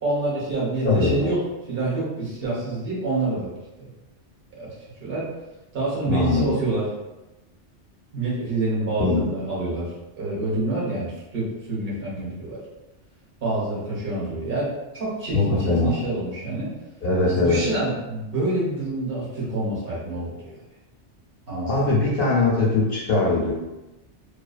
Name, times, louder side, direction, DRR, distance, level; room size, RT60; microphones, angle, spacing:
voice 1, 0.0-1.4 1.7-3.5 3.8-3.9 4.5-4.7 5.0-5.3 5.7-6.9 8.1-12.6 13.4-16.7 17.4-20.5 21.5-21.9, right 2 dB, 55° right, -7 dB, 1.2 m, -27 dB
voice 2, 0.8-1.3 6.1-6.6 9.0-9.2 15.3-15.9 17.0-17.6 21.7-23.5, left 3 dB, 60° left, -6 dB, 0.7 m, -21 dB
2.4 x 2.3 x 2.3 m, 1.0 s
omnidirectional pair, 1.2 m